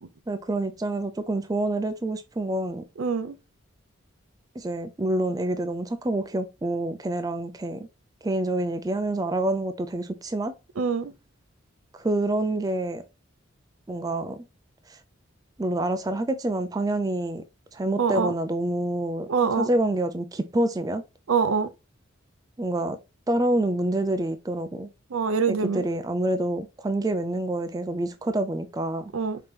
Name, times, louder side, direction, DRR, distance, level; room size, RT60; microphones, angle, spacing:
voice 1, 0.3-2.8 4.6-7.9 8.2-10.5 12.0-13.0 13.9-14.4 14.9-15.0 15.6-17.4 17.7-19.3 19.6-21.0 22.6-23.0 23.3-24.9 25.5-29.1, right 1 dB, 15° right, 0.3 m, -27 dB
voice 2, 3.0-3.4 10.8-11.1 18.0-18.3 19.3-19.7 21.3-21.7 25.1-25.8 29.1-29.4, right 5 dB, 75° right, 0.5 m, -24 dB
5.2 x 2.8 x 3.2 m
head